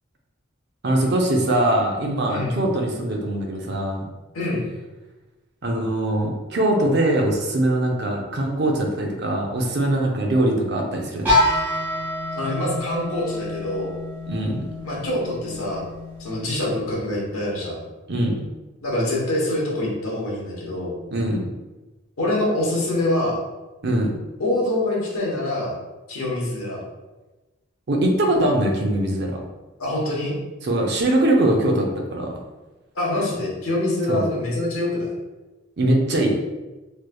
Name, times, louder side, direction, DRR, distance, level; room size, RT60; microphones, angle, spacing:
voice 1, 0.8-4.0 5.6-11.3 14.3-14.7 18.1-18.4 21.1-21.5 23.8-24.2 27.9-29.4 30.6-32.3 34.1-34.2 35.8-36.3, right 1 dB, 50° right, 0 dB, 0.5 m, -22 dB
voice 2, 2.3-2.6 4.3-4.7 12.3-14.0 14.8-15.9 16.2-17.9 18.8-21.0 22.2-23.4 24.4-25.7 26.1-26.8 29.8-30.4 32.9-35.1, left 1 dB, 85° left, -4 dB, 1.0 m, -25 dB
sound 1, 11.3-17.1, left 1 dB, 10° right, 0.9 m, -27 dB
3.2 x 3.2 x 2.2 m, 1.1 s
head